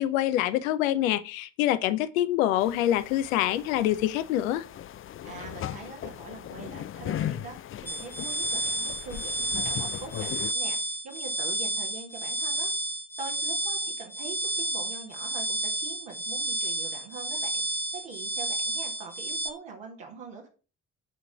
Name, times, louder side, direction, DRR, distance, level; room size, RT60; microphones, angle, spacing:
voice 1, 0.0-4.6, left 13 dB, 90° left, 0.6 m, -25 dB
sound 1, 2.6-10.5, left 11 dB, 35° left, 0.4 m, -38 dB
voice 2, 5.2-12.7 13.2-20.5, right 4 dB, 75° right, 1.8 m, -43 dB
sound 2, 7.9-19.5, right 2 dB, 5° left, 1.3 m, -31 dB
8.6 x 3.8 x 5.7 m
hypercardioid pair, 45°, 39 cm